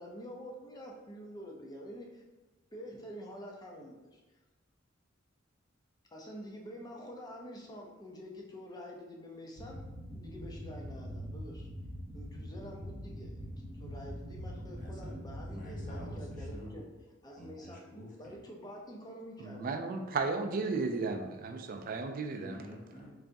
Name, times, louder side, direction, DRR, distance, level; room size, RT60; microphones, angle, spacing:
voice 1, 0.0-2.2 2.7-4.2 6.1-9.8 10.1-11.7 12.1-16.8 17.2-17.8 18.2-19.6, equal, 20° left, -1 dB, 0.6 m, -47 dB
sound 1, 9.6-16.6, equal, 75° right, 0.7 m, -43 dB
voice 2, 14.8-16.9 17.4-18.4 22.3-23.2, equal, 40° left, -3 dB, 0.9 m, -49 dB
voice 3, 19.4-22.6, right 4 dB, 45° right, 6 dB, 0.4 m, -34 dB
3.9 x 3.4 x 2.6 m, 1.1 s
head